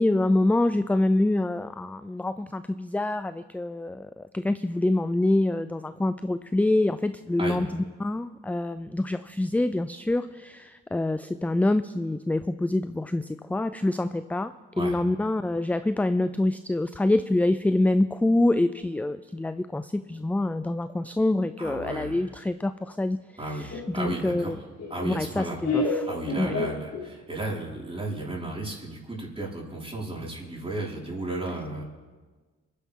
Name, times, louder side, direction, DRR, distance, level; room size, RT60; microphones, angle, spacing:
voice 1, 0.0-23.2 23.5-24.6 25.1-26.1 26.4-26.5, left 2 dB, 5° left, 12 dB, 0.4 m, -26 dB
voice 2, 21.6-22.2 23.4-24.6 24.9-25.6 26.0-31.8, right 2 dB, 20° right, -4 dB, 5.2 m, -34 dB
Laughter, 23.7-27.4, left 3 dB, 55° left, 3.4 m, -31 dB
23.0 x 10.5 x 3.7 m, 1.3 s
cardioid pair, 70°, 31 cm